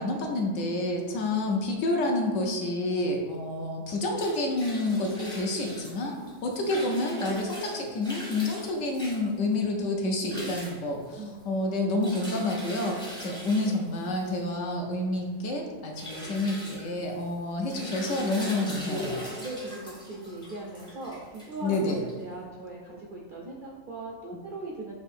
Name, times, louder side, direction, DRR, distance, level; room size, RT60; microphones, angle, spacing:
voice 1, 0.0-6.2 6.4-19.3 21.6-22.0, left 2 dB, 70° left, 1 dB, 0.9 m, -29 dB
sound 1, 3.9-22.4, equal, 5° left, 0.5 m, -41 dB
voice 2, 11.2-11.5 17.6-18.0 19.4-24.9, right 2 dB, 60° right, -3 dB, 0.5 m, -40 dB
6.4 x 2.6 x 2.5 m, 1.4 s
omnidirectional pair, 1.4 m